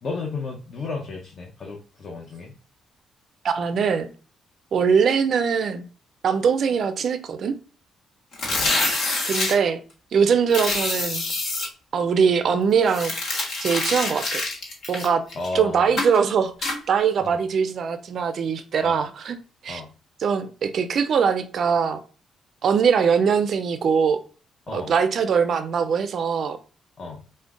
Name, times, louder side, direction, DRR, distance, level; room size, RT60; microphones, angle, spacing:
voice 1, 0.0-2.5 8.4-8.7 15.3-16.0 17.2-17.4 18.8-19.0 19.7-19.9 24.7-24.9 27.0-27.2, left 3 dB, 45° left, 0.7 m, -33 dB
voice 2, 3.4-4.1 4.7-5.8 6.2-7.5 9.2-9.8 10.1-11.2 11.9-13.1 13.6-14.5 14.9-15.2 15.5-19.4 19.6-19.8 20.2-22.0 22.6-24.2 24.7-26.6, right 6 dB, 60° right, 0.3 m, -22 dB
sound 1, 8.3-9.5 10.5-11.7 12.9-15.5 16.0-16.2 16.6-16.8, left 2 dB, 70° left, 1.2 m, -26 dB
5.0 x 2.1 x 2.4 m
cardioid pair, 90°, 0 cm